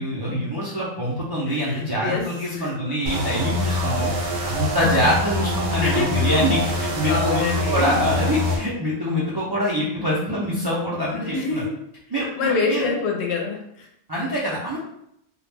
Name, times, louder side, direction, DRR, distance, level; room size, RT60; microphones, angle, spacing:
voice 1, 0.0-4.1 4.4-11.6 12.1-12.8 14.1-14.8, equal, 40° right, -7 dB, 0.3 m, -24 dB
voice 2, 1.5-2.7 5.8-6.3 7.1-8.1 11.3-11.7 12.4-13.9, left 4 dB, 70° left, 0 dB, 0.8 m, -26 dB
sound 1, 3.1-8.6, left 1 dB, 80° right, 1.0 m, -24 dB
2.3 x 2.1 x 3.3 m, 0.75 s
omnidirectional pair, 1.3 m